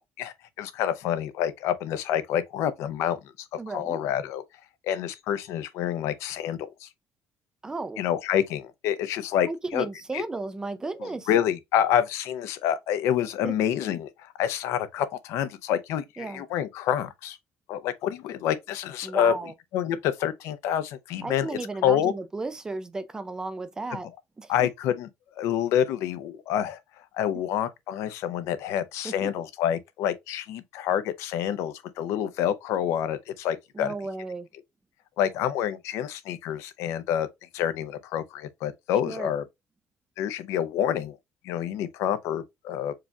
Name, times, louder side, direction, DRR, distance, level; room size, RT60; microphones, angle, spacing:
voice 1, 0.0-3.2 3.7-4.4 4.8-6.9 8.0-9.5 9.7-9.9 10.1-10.2 11.3-17.4 17.7-19.3 19.7-21.5 21.8-22.1 24.5-25.1 25.4-26.8 27.2-33.9 35.2-37.3 37.5-39.4 40.2-41.2 41.4-42.9, left 10 dB, 75° left, 0.5 m, -27 dB
voice 2, 3.6-4.0 7.6-8.0 9.4-11.3 13.4-13.6 16.2-16.4 19.0-19.5 21.2-24.1 24.4-24.7 29.0-29.3 33.7-34.5 39.1-39.3, right 3 dB, 15° right, 0.3 m, -34 dB
4.8 x 2.3 x 2.7 m
cardioid pair, 160°, 5 cm